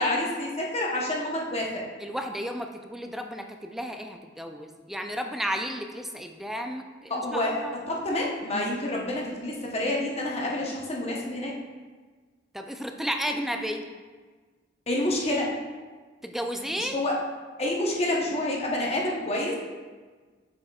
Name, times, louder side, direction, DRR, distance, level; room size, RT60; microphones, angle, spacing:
voice 1, 0.0-1.8 7.1-11.5 14.9-15.5 16.8-17.2 17.6-19.6, left 1 dB, 35° left, -2 dB, 0.9 m, -28 dB
voice 2, 2.0-7.8 12.5-13.9 16.2-17.0, equal, ahead, 4 dB, 0.4 m, -33 dB
7.4 x 6.2 x 2.4 m, 1.4 s
head